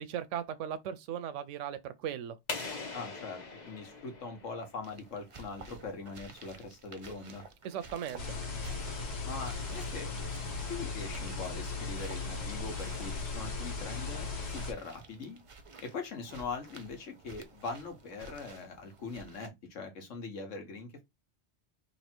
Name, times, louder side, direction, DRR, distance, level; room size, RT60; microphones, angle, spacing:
voice 1, 0.0-2.4 7.6-8.4, right 9 dB, 80° right, 0.9 m, -37 dB
sound 1, 2.5-5.1, left 3 dB, 40° left, 1.1 m, -41 dB
voice 2, 2.9-7.4 9.2-10.1 10.7-15.4 15.8-21.0, left 4 dB, 80° left, 1.5 m, -42 dB
sound 2, 4.8-19.5, right 3 dB, 35° right, 0.5 m, -52 dB
sound 3, 8.2-14.7, left 4 dB, 60° left, 1.4 m, -37 dB
3.2 x 2.8 x 4.3 m
omnidirectional pair, 1.3 m